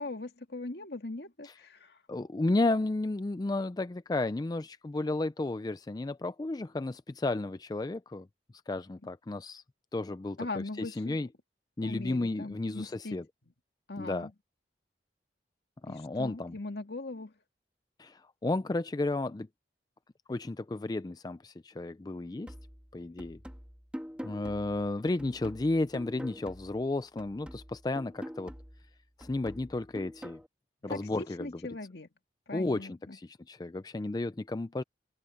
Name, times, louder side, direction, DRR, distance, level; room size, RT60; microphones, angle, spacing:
voice 1, 0.0-2.0 10.4-11.2 11.8-13.2 13.9-14.3 15.9-17.3 30.9-32.1 32.5-33.2, left 2 dB, 70° left, 2.1 m, -40 dB
voice 2, 2.1-8.3 8.7-9.6 9.9-11.3 11.8-13.2 14.0-14.3 15.8-16.6 18.0-19.5 20.3-22.5 22.9-23.4 24.2-28.5 29.2-30.4 30.8-31.8 32.5-34.8, left 2 dB, 20° left, 0.4 m, -33 dB
sound 1, 22.5-26.9 27.2-30.5, equal, 5° right, 2.9 m, -45 dB
open air
head